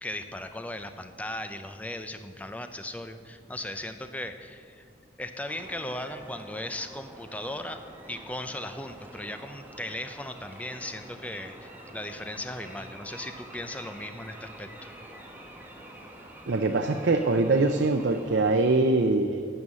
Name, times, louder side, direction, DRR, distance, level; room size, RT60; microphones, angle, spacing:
voice 1, 0.0-4.8 5.2-7.8 8.1-14.9, left 1 dB, 10° left, 8 dB, 0.5 m, -37 dB
sound 1, 5.5-18.7, right 1 dB, 10° right, 1.1 m, -47 dB
voice 2, 16.5-19.4, right 3 dB, 75° right, 6 dB, 0.6 m, -23 dB
12.5 x 5.5 x 8.8 m, 2.2 s
head